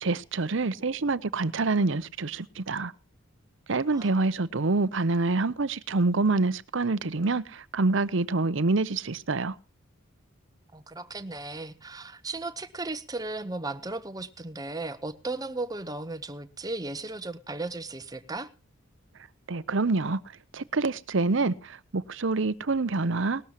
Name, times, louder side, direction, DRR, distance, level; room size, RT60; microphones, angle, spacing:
voice 1, 0.0-2.9 3.7-9.5 19.5-20.2 20.5-23.4, right 3 dB, 60° right, 0.7 m, -26 dB
voice 2, 3.9-4.3 10.7-18.5, right 2 dB, 20° right, 0.9 m, -36 dB
19.5 x 13.0 x 3.0 m
head